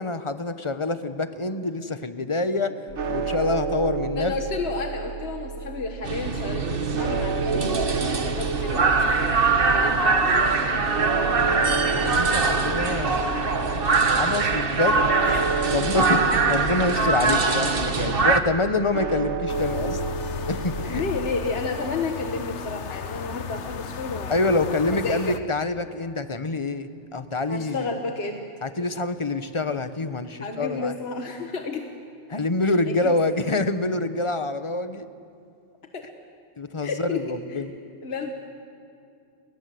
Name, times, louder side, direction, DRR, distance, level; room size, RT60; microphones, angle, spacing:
voice 1, 0.0-4.3 11.4-13.5 14.1-15.0 15.7-20.0 20.5-21.0 24.3-27.9 28.6-30.9 32.3-35.1 36.6-37.7, left 2 dB, 30° left, 11 dB, 1.1 m, -26 dB
sound 1, 2.9-21.6, right 4 dB, 85° right, 1.6 m, -32 dB
voice 2, 4.1-9.4 9.7-10.5 15.3-15.5 20.8-25.4 27.5-28.5 30.4-31.8 32.6-33.1 35.9-36.1 36.8-37.6 38.0-38.3, left 3 dB, 65° left, 4 dB, 1.7 m, -32 dB
sound 2, 6.0-18.4, right 4 dB, 55° right, 1.5 m, -23 dB
sound 3, 19.5-25.4, left 7 dB, 85° left, 1.2 m, -35 dB
30.0 x 21.5 x 7.8 m, 2.5 s
omnidirectional pair, 1.2 m